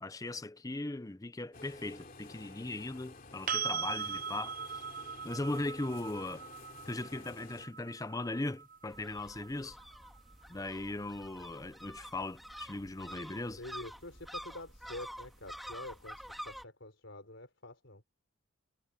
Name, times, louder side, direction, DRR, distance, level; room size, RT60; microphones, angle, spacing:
voice 1, 0.0-4.6 5.2-6.4 6.9-9.8 10.5-13.6, left 2 dB, 15° left, 0.6 m, -38 dB
sound 1, 1.5-7.7, left 3 dB, 45° left, 2.9 m, -52 dB
sound 2, 3.5-11.3 14.1-14.2, right 7 dB, 40° right, 0.9 m, -41 dB
voice 2, 6.8-7.3 13.6-18.0, left 2 dB, 65° left, 4.9 m, -47 dB
sound 3, 8.9-16.6, equal, ahead, 2.4 m, -48 dB
head